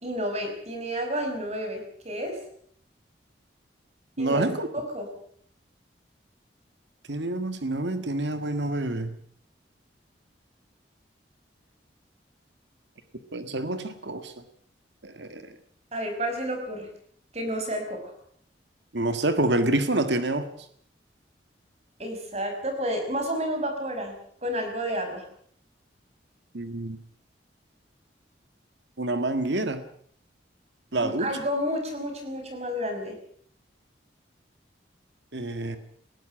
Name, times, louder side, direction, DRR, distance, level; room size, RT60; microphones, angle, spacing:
voice 1, 0.0-2.4 4.2-4.4 4.7-5.1 15.9-16.9 17.3-18.1 22.0-24.2 24.4-25.2 31.0-33.2, equal, 35° right, 5 dB, 5.4 m, -30 dB
voice 2, 4.2-4.7 7.1-9.2 13.3-14.3 15.0-15.5 18.9-20.5 26.5-27.0 29.0-29.8 30.9-31.3 35.3-35.8, right 2 dB, 75° right, 10 dB, 1.8 m, -27 dB
19.5 x 15.5 x 8.9 m, 0.62 s
head